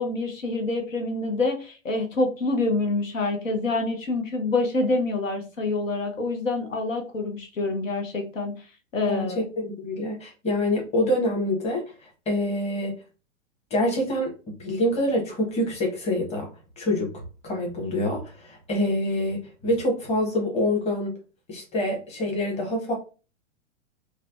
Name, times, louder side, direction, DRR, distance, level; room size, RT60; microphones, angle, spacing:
voice 1, 0.0-8.5 8.9-9.4, left 2 dB, 80° left, 0.9 m, -26 dB
voice 2, 9.1-12.9 13.7-14.3 14.6-16.5 16.8-21.1 21.5-22.9, left 1 dB, 15° left, 1.0 m, -26 dB
3.2 x 2.1 x 2.4 m
figure-of-eight pair, 110°, 38 cm